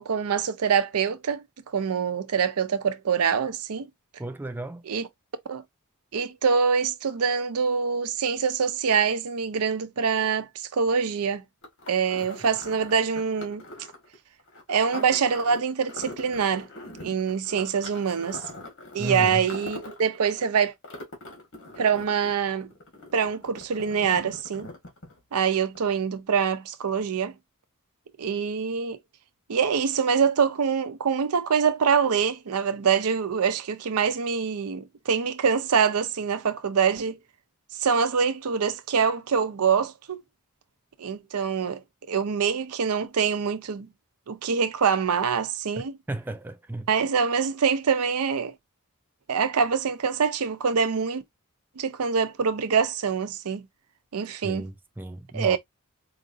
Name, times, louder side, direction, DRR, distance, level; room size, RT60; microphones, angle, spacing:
voice 1, 0.0-1.4 1.7-3.9 4.9-5.1 5.5-5.6 6.1-11.4 11.9-13.6 14.7-16.7 17.0-18.4 18.9-20.7 21.8-22.7 23.1-24.7 25.3-27.3 28.2-29.0 29.5-37.2 37.8-40.2 41.0-41.8 42.1-43.9 44.3-45.9 46.9-48.5 49.3-51.2 51.8-53.6 54.1-54.7 55.3-55.6, right 6 dB, 80° right, 0.6 m, -25 dB
voice 2, 4.2-4.8 19.0-19.4 46.1-46.9 54.4-55.6, right 2 dB, 10° right, 0.3 m, -33 dB
sound 1, 11.6-25.4 25.7-25.8, left 1 dB, 60° left, 1.7 m, -42 dB
4.7 x 2.6 x 2.5 m
head